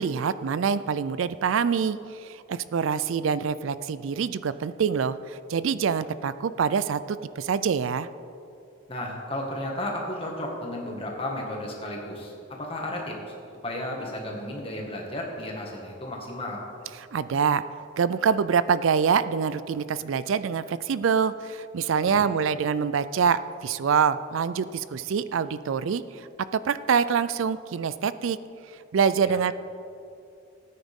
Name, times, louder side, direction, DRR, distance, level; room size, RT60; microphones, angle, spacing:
voice 1, 0.0-8.1 17.0-17.6 18.0-26.3 26.5-28.4 28.9-29.5, right 6 dB, 80° right, 15 dB, 0.4 m, -25 dB
voice 2, 8.9-12.3 12.6-13.3 13.6-16.6 22.1-22.2 29.3-29.4, left 1 dB, 25° left, -1 dB, 1.9 m, -33 dB
17.0 x 9.6 x 3.7 m, 2.6 s
head